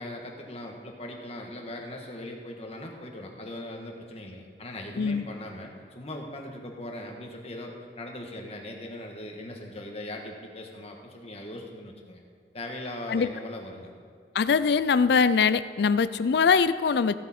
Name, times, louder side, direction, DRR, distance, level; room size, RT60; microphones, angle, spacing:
voice 1, 0.0-12.2 12.5-13.9, left 1 dB, 35° left, 1 dB, 1.5 m, -39 dB
voice 2, 14.3-17.2, left 5 dB, 65° left, 15 dB, 0.4 m, -22 dB
15.5 x 8.0 x 4.3 m, 2.1 s
head